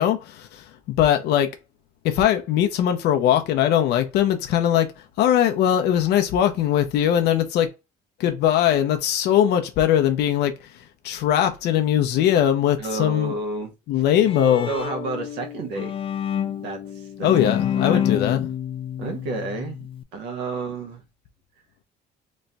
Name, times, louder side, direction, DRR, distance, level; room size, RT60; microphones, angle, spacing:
voice 1, 0.0-1.5 2.0-4.9 5.2-7.7 8.2-10.5 11.0-13.3 13.9-14.7 17.2-18.4, left 10 dB, 80° left, 0.7 m, -20 dB
voice 2, 12.8-13.7 14.7-15.9 16.4-17.3 17.7-18.0 19.0-21.0, right 3 dB, 85° right, 1.0 m, -31 dB
Bowed string instrument, 13.9-20.0, left 9 dB, 30° left, 0.4 m, -28 dB
3.1 x 2.3 x 3.9 m
cardioid pair, 110°, 17 cm